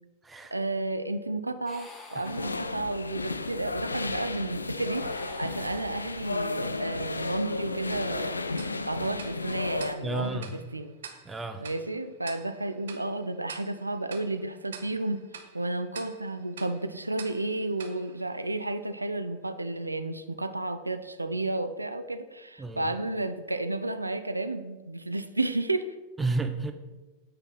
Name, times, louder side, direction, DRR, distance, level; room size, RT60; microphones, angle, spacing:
voice 1, 0.5-5.1 5.4-8.3 8.8-10.9 11.6-15.2 15.5-25.9, right 2 dB, 85° right, 9 dB, 0.3 m, -32 dB
sound 1, 1.7-3.1 4.7-6.6, left 2 dB, 20° left, 1.0 m, -49 dB
sound 2, 2.2-9.9, left 3 dB, 80° left, 0.3 m, -33 dB
Tick-tock, 8.6-19.0, right 7 dB, 65° right, 0.8 m, -48 dB
voice 2, 10.0-10.5 11.3-11.6 22.6-22.9 26.2-26.7, right 3 dB, 10° right, 7 dB, 0.6 m, -31 dB
8.3 x 3.3 x 5.5 m, 1.2 s
figure-of-eight pair, 90°, 0 cm